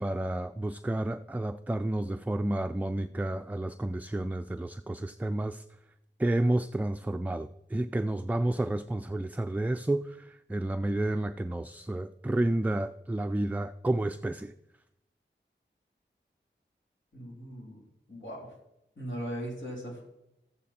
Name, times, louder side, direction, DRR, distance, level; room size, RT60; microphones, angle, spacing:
voice 1, 0.0-5.6 6.2-14.5, right 1 dB, 10° right, 0.4 m, -30 dB
voice 2, 17.1-17.8 18.1-18.5 19.0-20.0, equal, 80° left, 3.7 m, -39 dB
13.5 x 8.5 x 4.3 m
wide cardioid pair, 65°, 19 cm